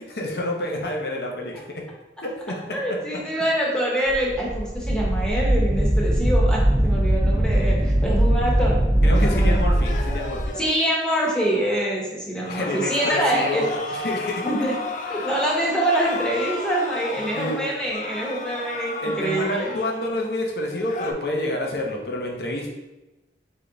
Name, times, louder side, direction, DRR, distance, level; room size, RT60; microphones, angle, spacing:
voice 1, 0.1-1.8 2.5-2.8 9.0-10.6 12.5-13.6 13.9-14.4 15.1-15.3 17.3-17.6 19.0-22.7, left 1 dB, 60° left, 0 dB, 0.8 m, -28 dB
voice 2, 2.7-9.6 10.6-13.6 14.4-14.7 15.1-19.7, right 1 dB, 5° left, -4 dB, 0.9 m, -25 dB
Wind, 4.1-10.5, right 1 dB, 15° right, 0.5 m, -20 dB
sound 1, 9.1-11.9 12.4-20.2 20.7-21.1, left 3 dB, 45° left, 0.4 m, -34 dB
3.7 x 3.4 x 3.8 m, 1.0 s
head